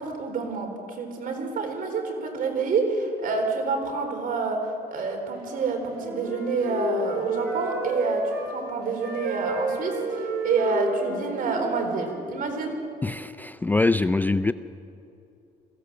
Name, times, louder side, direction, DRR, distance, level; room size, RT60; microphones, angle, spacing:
voice 1, 0.0-4.6 4.9-12.7, right 4 dB, 55° right, 4 dB, 4.0 m, -28 dB
Wind instrument woodwind instrument, 5.4-8.5 9.0-12.2, right 1 dB, 75° right, 6.4 m, -31 dB
voice 2, 13.0-14.5, left 3 dB, 10° left, 12 dB, 0.4 m, -23 dB
22.5 x 15.0 x 7.5 m, 2.7 s
cardioid pair, 110°, 17 cm